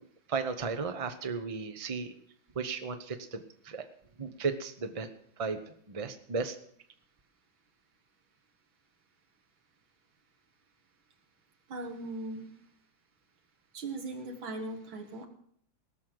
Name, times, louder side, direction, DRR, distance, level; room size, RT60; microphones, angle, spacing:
voice 1, 0.3-2.1 2.5-3.8 4.2-5.1 5.4-5.6 5.9-6.5, right 5 dB, 50° right, 7 dB, 0.4 m, -34 dB
voice 2, 11.7-12.5 13.7-15.3, right 2 dB, 75° right, 5 dB, 2.6 m, -39 dB
18.0 x 6.5 x 7.7 m, 0.63 s
omnidirectional pair, 2.2 m